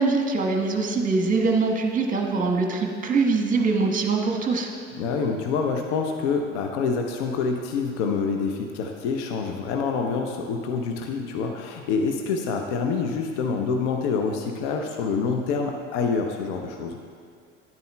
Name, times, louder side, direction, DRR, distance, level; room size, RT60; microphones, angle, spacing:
voice 1, 0.0-4.7, right 4 dB, 20° right, 2 dB, 1.2 m, -23 dB
voice 2, 5.0-17.0, left 5 dB, 65° left, 3 dB, 0.7 m, -26 dB
10.5 x 9.0 x 2.2 m, 2.2 s
hypercardioid pair, 70°, 37 cm